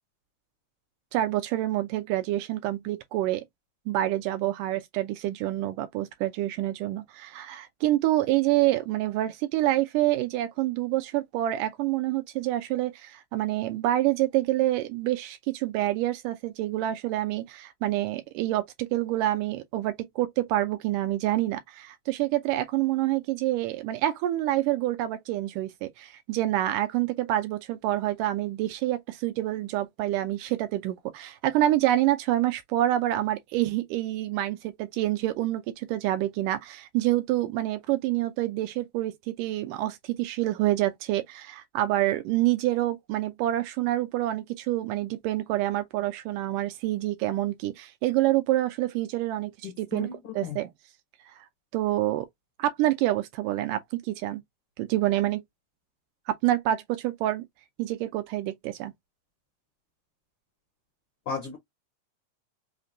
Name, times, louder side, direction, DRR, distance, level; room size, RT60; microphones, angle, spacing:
voice 1, 1.1-3.4 3.9-50.7 51.3-51.4 51.7-52.3 52.6-54.4 54.8-55.4 56.3-57.4 57.8-58.9, right 15 dB, 80° right, 2.0 m, -27 dB
voice 2, 49.6-50.1 50.4-50.6 61.3-61.6, left 6 dB, 80° left, 1.2 m, -34 dB
5.6 x 2.2 x 2.6 m
omnidirectional pair, 3.9 m